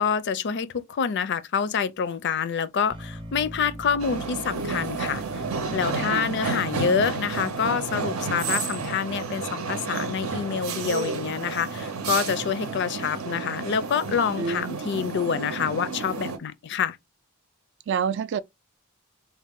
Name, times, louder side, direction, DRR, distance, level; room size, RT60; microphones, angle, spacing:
voice 1, 0.0-5.2 5.7-17.0, left 6 dB, 55° left, 0.4 m, -27 dB
sound 1, 2.9-8.9, right 1 dB, 25° right, 0.7 m, -44 dB
sound 2, 4.0-16.4, right 4 dB, 80° right, 0.7 m, -31 dB
voice 2, 6.0-6.3 14.4-14.8 17.9-18.4, right 6 dB, 55° right, 0.3 m, -28 dB
4.1 x 2.1 x 3.6 m
head